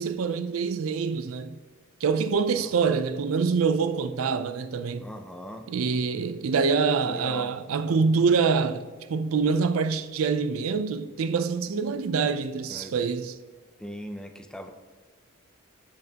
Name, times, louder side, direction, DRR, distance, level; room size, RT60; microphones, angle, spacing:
voice 1, 0.0-1.6 2.0-5.0 5.7-13.3, right 5 dB, 80° right, 0.4 m, -25 dB
voice 2, 2.5-3.0 5.0-5.7 7.1-7.5 12.7-13.0 13.8-14.7, equal, 5° left, 0.5 m, -40 dB
7.7 x 7.1 x 2.9 m
head